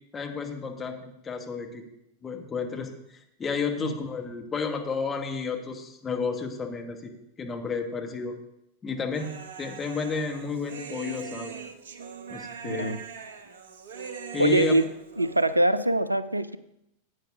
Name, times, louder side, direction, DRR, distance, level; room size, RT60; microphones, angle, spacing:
voice 1, 0.1-1.9 2.2-7.1 7.4-8.3 8.8-9.3 9.6-11.6 12.3-13.0 14.3-14.8, left 5 dB, 20° left, 3 dB, 1.5 m, -32 dB
Human voice, 9.1-15.6, right 6 dB, 60° right, 0.8 m, -41 dB
voice 2, 12.6-13.0 14.4-14.8 15.2-16.6, right 1 dB, 85° right, 16 dB, 0.4 m, -23 dB
16.5 x 8.8 x 2.6 m, 0.80 s
figure-of-eight pair, 90°, 0 cm